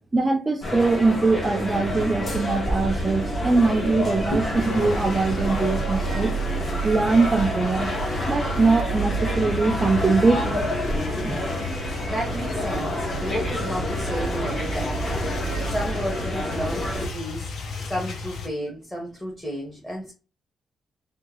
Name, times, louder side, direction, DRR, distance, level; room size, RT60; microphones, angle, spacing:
voice 1, 0.1-4.4 4.7-6.3 6.8-7.9 8.3-10.8 11.2-11.4, right 3 dB, 20° right, 0.4 m, -22 dB
sound 1, 0.6-17.1, left 2 dB, 40° left, 0.9 m, -29 dB
sound 2, 1.8-17.3, right 7 dB, 85° right, 0.5 m, -33 dB
sound 3, 4.6-18.5, left 4 dB, 60° left, 0.6 m, -36 dB
voice 2, 12.1-20.1, equal, 15° left, 1.0 m, -32 dB
3.6 x 2.3 x 2.9 m
cardioid pair, 140°, 0 cm